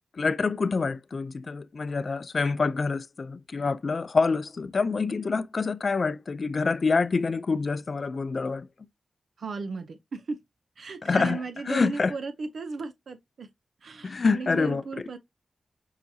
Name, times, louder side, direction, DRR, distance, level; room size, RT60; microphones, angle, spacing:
voice 1, 0.1-8.7 11.0-11.4 11.7-12.1 14.0-15.1, left 4 dB, 55° left, 0.3 m, -26 dB
voice 2, 9.4-10.4 10.8-13.5 13.8-15.2, right 4 dB, 75° right, 0.5 m, -36 dB
5.6 x 2.3 x 2.7 m
cardioid pair, 60°, 0 cm